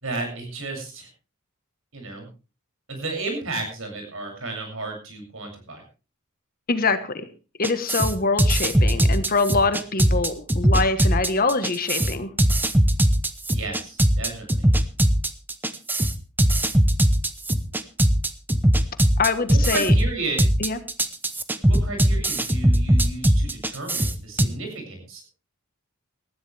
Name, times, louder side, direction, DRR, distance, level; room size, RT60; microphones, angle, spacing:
voice 1, 0.0-1.1 1.9-2.3 2.9-5.8 13.5-14.7 19.5-20.4 21.6-25.3, right 2 dB, 65° right, 4 dB, 7.2 m, -33 dB
voice 2, 6.7-7.2 7.6-12.3 19.2-19.9 20.6-20.8, left 3 dB, 40° left, 10 dB, 1.3 m, -24 dB
sound 1, 7.6-24.5, right 1 dB, 10° right, 0.8 m, -20 dB
20.0 x 14.0 x 3.4 m, 0.33 s
head